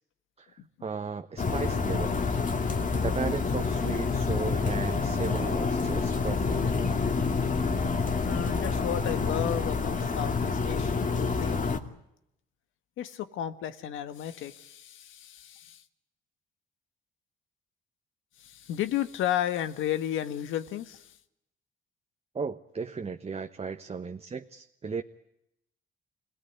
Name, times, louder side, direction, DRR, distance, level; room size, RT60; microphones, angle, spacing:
voice 1, 0.4-2.1 2.9-6.8 22.3-25.0, right 5 dB, 30° right, 6 dB, 1.2 m, -35 dB
sound 1, 1.4-11.8, left 4 dB, 40° left, 2.5 m, -28 dB
voice 2, 8.2-11.7 13.0-15.8 18.4-21.1, left 11 dB, 85° left, 10 dB, 1.7 m, -33 dB
25.0 x 18.5 x 9.6 m, 0.81 s
cardioid pair, 90°, 20 cm